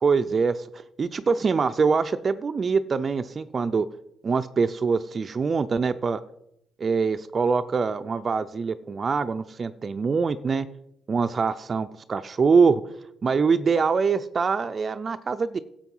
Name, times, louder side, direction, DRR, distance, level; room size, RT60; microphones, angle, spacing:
voice 1, 0.0-0.7 1.0-3.9 4.2-6.2 6.8-10.7 11.1-12.8 13.2-15.6, right 5 dB, 40° right, 10 dB, 0.5 m, -24 dB
11.0 x 7.4 x 5.4 m, 0.78 s
cardioid pair, 90°, 0 cm